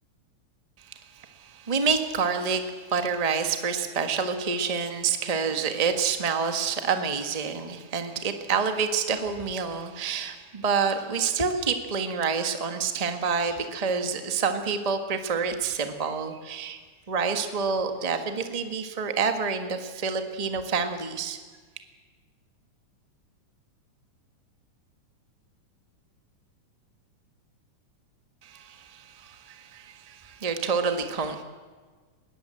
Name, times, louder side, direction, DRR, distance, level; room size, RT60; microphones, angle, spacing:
voice 1, 0.8-16.8 17.1-21.4 28.4-31.4, right 5 dB, 85° right, 7 dB, 0.3 m, -28 dB
21.5 x 18.0 x 7.8 m, 1.5 s
omnidirectional pair, 3.7 m